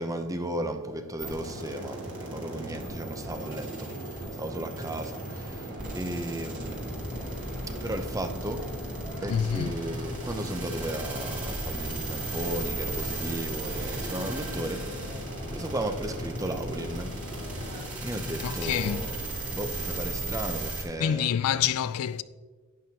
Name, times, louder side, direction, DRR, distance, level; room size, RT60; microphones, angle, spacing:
voice 1, 0.0-8.9 9.2-17.2 18.0-19.2 19.5-21.3, right 1 dB, 15° right, 0.6 m, -35 dB
sound 1, 1.2-20.8, right 2 dB, 35° right, 2.4 m, -38 dB
sound 2, 1.2-17.8, right 1 dB, 70° right, 3.0 m, -39 dB
sound 3, 6.6-20.3, left 1 dB, 35° left, 0.6 m, -40 dB
voice 2, 9.3-9.7 18.4-19.1 21.0-22.2, left 9 dB, 70° left, 0.3 m, -27 dB
11.0 x 9.2 x 2.9 m
head